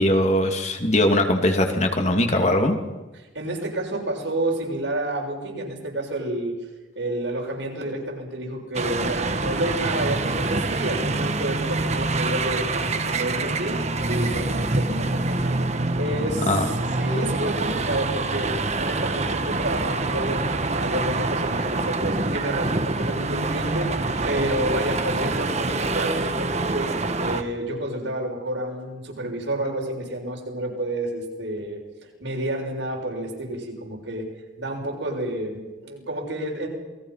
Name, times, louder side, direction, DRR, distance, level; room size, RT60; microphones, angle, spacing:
voice 1, 0.0-2.8 16.5-16.7, left 1 dB, 35° left, 4 dB, 2.7 m, -20 dB
voice 2, 3.4-6.5 7.0-13.8 14.1-15.7 16.0-18.5 18.8-26.9 27.2-34.3 34.6-36.7, right 1 dB, 75° right, 1 dB, 6.9 m, -29 dB
sound 1, 8.7-27.4, right 2 dB, 35° right, 1.5 m, -26 dB
28.5 x 21.5 x 5.9 m, 1.2 s
head